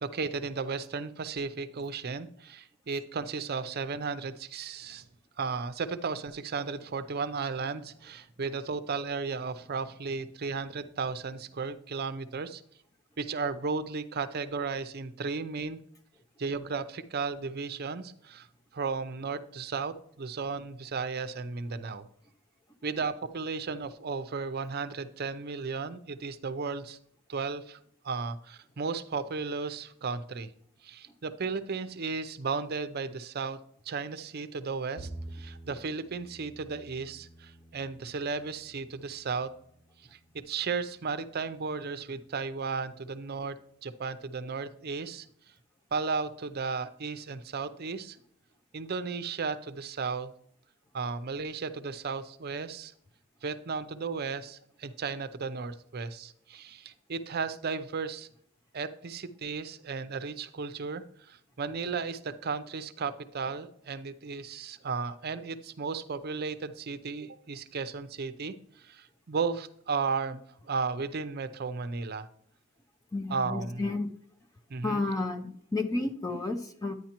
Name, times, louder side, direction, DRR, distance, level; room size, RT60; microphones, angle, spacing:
voice 1, 0.0-5.0 5.4-12.6 13.2-15.8 16.4-18.5 18.7-22.1 22.8-27.0 27.3-27.8 28.0-30.5 30.8-33.6 33.9-39.5 40.1-40.2 40.5-45.3 45.9-48.2 48.7-50.3 50.9-52.9 53.4-58.3 58.7-72.3 73.3-73.9 74.7-75.0 76.3-76.4, right 4 dB, 45° right, 13 dB, 0.5 m, -34 dB
Bowed string instrument, 35.0-41.3, right 1 dB, 75° left, 2.7 m, -49 dB
voice 2, 73.1-74.1 74.8-76.9, left 2 dB, 15° left, 5 dB, 0.5 m, -31 dB
10.5 x 9.3 x 2.9 m, 0.66 s
head